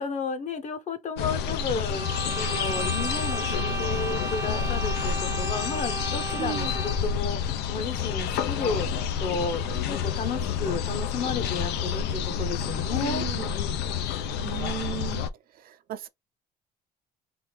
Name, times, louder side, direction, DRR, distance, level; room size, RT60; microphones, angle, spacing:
voice 1, 0.0-13.3, left 4 dB, 45° left, 1.0 m, -33 dB
sound 1, 1.2-15.3, left 7 dB, 80° left, 0.5 m, -29 dB
sound 2, 1.9-7.2, right 3 dB, 15° right, 0.6 m, -34 dB
voice 2, 6.4-6.7 12.9-13.5 14.4-15.2 15.6-16.1, right 11 dB, 60° right, 0.6 m, -35 dB
3.6 x 2.6 x 3.0 m
cardioid pair, 110°, 17 cm